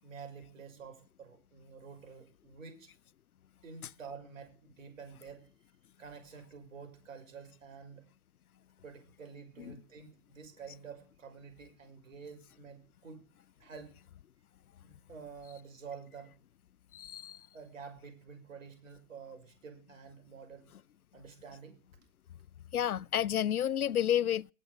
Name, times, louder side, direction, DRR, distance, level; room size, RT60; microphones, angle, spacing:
voice 1, 0.0-2.9 3.6-5.5 6.0-8.0 8.8-13.2 13.6-13.9 14.8-16.3 17.5-20.7 21.1-21.8, right 5 dB, 60° right, 6.0 m, -49 dB
voice 2, 16.9-17.4 22.7-24.5, left 10 dB, 75° left, 0.5 m, -30 dB
19.0 x 6.8 x 5.1 m
figure-of-eight pair, 115°, 44 cm